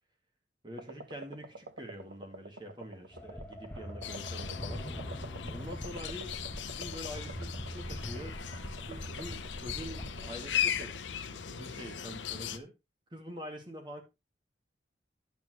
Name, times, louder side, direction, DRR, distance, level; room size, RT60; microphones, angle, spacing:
voice 1, 0.6-4.9 5.5-6.3 6.7-8.3 8.7-11.0 11.3-12.7 13.1-14.0, equal, 25° right, 2.1 m, -45 dB
sound 1, 0.7-11.1, right 2 dB, 85° right, 1.0 m, -50 dB
sound 2, 3.1-10.4, equal, 10° left, 1.1 m, -43 dB
sound 3, 4.0-12.6, left 9 dB, 85° left, 0.8 m, -38 dB
10.5 x 8.2 x 3.1 m
head